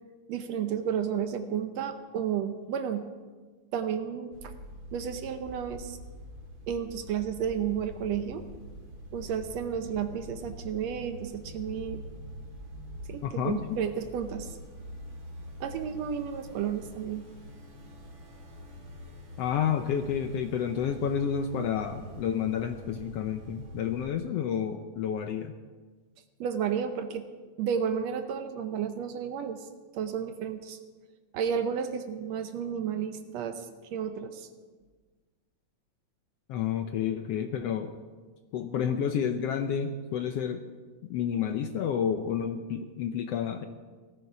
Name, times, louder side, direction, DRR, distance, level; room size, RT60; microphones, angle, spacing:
voice 1, 0.3-3.1 3.7-4.5 4.9-6.0 6.7-8.4 9.1-12.0 13.1-14.5 15.6-17.3 26.4-27.3 27.6-29.7 29.9-30.8 31.3-34.5, right 8 dB, 70° right, 8 dB, 1.9 m, -32 dB
sound 1, 4.3-24.1, equal, 35° right, 1.9 m, -45 dB
voice 2, 13.2-13.6 19.4-25.5 36.5-37.9 38.5-40.6 41.1-43.7, left 8 dB, 75° left, 7 dB, 1.5 m, -30 dB
18.0 x 14.0 x 4.8 m, 1.4 s
omnidirectional pair, 3.4 m